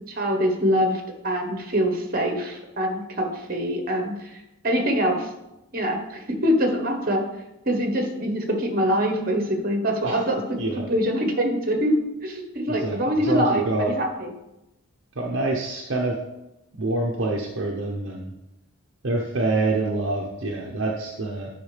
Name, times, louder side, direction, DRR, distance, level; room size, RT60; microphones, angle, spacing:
voice 1, 0.1-0.9 1.2-4.1 4.6-5.3 5.7-7.2 7.7-10.6 10.9-11.9 12.2-14.3, equal, 40° right, 3 dB, 1.2 m, -24 dB
voice 2, 12.7-13.9 15.2-16.2 16.8-18.3 19.0-21.5, right 2 dB, 55° right, -1 dB, 0.8 m, -26 dB
9.3 x 5.7 x 3.4 m, 0.91 s
head